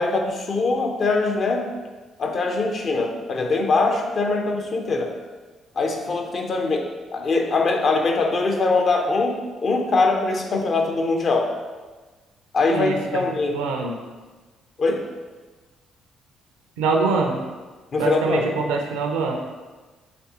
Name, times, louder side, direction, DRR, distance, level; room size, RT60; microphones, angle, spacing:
voice 1, 0.0-1.7 2.2-5.2 5.8-11.6 12.5-13.6 14.8-15.0 17.9-18.5, left 3 dB, 45° left, 3 dB, 0.6 m, -22 dB
voice 2, 12.7-13.3 13.5-14.0 16.8-17.4 18.0-19.4, right 4 dB, 70° right, 3 dB, 0.4 m, -24 dB
4.2 x 3.4 x 2.8 m, 1.3 s
figure-of-eight pair, 40°, 0 cm